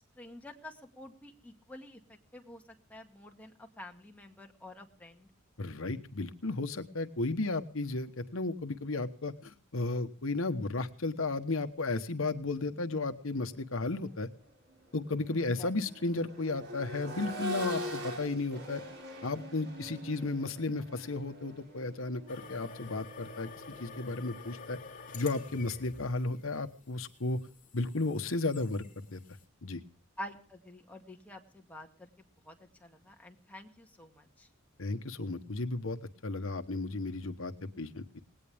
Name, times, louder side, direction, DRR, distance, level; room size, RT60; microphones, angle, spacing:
voice 1, 0.2-2.6 2.9-5.3 15.6-15.7 30.2-34.5, left 1 dB, 5° left, 2 dB, 2.1 m, -49 dB
voice 2, 5.6-14.3 14.9-18.8 19.2-23.5 23.8-24.8 25.1-27.4 27.7-28.8 29.1-29.2 29.6-29.8 34.8-36.0 36.2-38.2, left 3 dB, 65° left, 8 dB, 1.1 m, -34 dB
Accelerating revving vroom, 13.8-14.0 14.4-24.3 26.0-26.1, equal, 55° right, 6.6 m, -43 dB
sound 1, 22.3-29.5, left 4 dB, 40° left, 3.4 m, -50 dB
19.5 x 17.5 x 3.5 m, 0.42 s
head